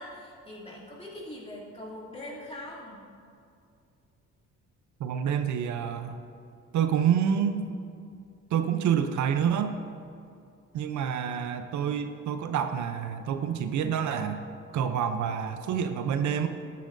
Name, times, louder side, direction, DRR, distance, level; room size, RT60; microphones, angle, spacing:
voice 1, 0.0-3.0, left 1 dB, 20° left, -5 dB, 2.6 m, -42 dB
voice 2, 5.0-6.2 6.7-7.7 8.5-9.8 10.7-14.4 14.7-16.5, right 8 dB, 70° right, 8 dB, 0.6 m, -27 dB
13.0 x 10.0 x 2.6 m, 2.4 s
cardioid pair, 90°, 30 cm